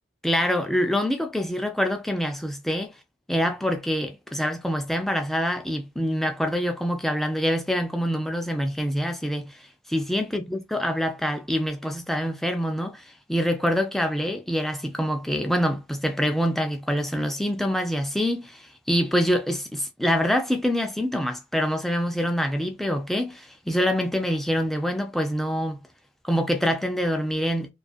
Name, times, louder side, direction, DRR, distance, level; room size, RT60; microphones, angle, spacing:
voice 1, 0.2-2.9 3.3-25.8 26.2-27.7, equal, ahead, 0.3 m, -25 dB
2.4 x 2.2 x 2.4 m
head